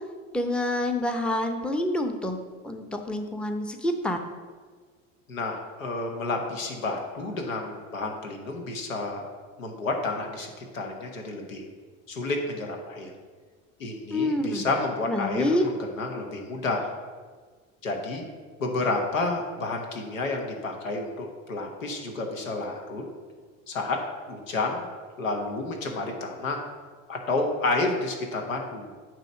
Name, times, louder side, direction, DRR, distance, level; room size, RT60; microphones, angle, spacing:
voice 1, 0.3-2.4 2.6-4.2 14.1-14.7 15.1-15.6, left 1 dB, 5° left, 5 dB, 0.7 m, -27 dB
voice 2, 5.3-9.3 9.6-11.6 12.1-13.1 13.8-16.9 17.8-18.2 18.6-23.0 23.7-24.0 24.3-24.9 25.2-26.6 27.1-28.9, left 2 dB, 80° left, 2 dB, 1.2 m, -30 dB
9.0 x 3.1 x 6.3 m, 1.5 s
hypercardioid pair, 70°, 39 cm